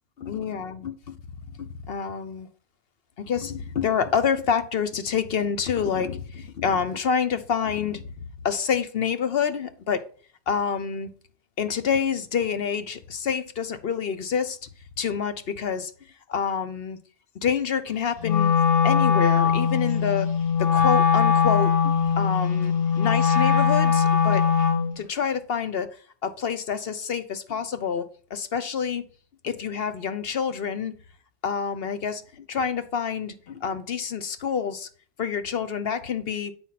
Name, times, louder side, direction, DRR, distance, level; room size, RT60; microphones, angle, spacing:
voice 1, 0.2-0.9 1.6-2.5 3.2-8.0 8.4-10.0 10.5-11.1 11.6-14.6 15.0-15.9 16.3-17.0 17.4-18.5 18.8-20.3 20.6-24.4 25.0-26.0 26.2-29.0 29.4-30.9 31.4-34.9 35.2-36.5, left 7 dB, 55° left, 0.9 m, -27 dB
Wind instrument woodwind instrument, 18.2-24.9, left 6 dB, 90° left, 2.3 m, -21 dB
9.0 x 4.4 x 5.8 m
omnidirectional pair, 1.3 m